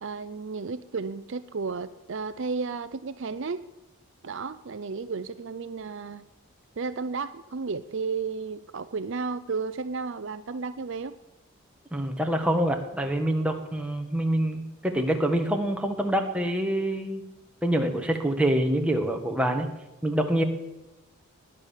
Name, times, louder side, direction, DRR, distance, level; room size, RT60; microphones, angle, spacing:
voice 1, 0.0-3.6 4.2-6.3 6.8-11.1, right 4 dB, 55° right, 13 dB, 0.5 m, -33 dB
voice 2, 11.9-17.2 17.6-19.7 20.0-20.4, right 1 dB, 5° right, 3 dB, 1.7 m, -26 dB
18.5 x 10.5 x 7.3 m, 0.98 s
head